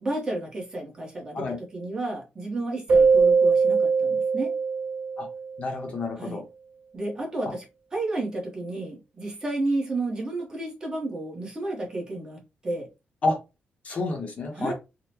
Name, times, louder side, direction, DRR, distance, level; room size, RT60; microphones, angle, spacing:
voice 1, 0.0-1.4 1.7-4.5 6.2-6.4 6.9-7.6 7.9-12.4 12.6-12.9 14.6-14.7, right 2 dB, 20° right, 1.0 m, -31 dB
Keyboard (musical), 2.9-5.6, right 5 dB, 45° right, 0.4 m, -21 dB
voice 2, 5.6-6.4 13.2-13.4 13.8-14.7, left 3 dB, 40° left, 0.8 m, -29 dB
3.6 x 2.1 x 2.8 m
wide cardioid pair, 175°, 4 cm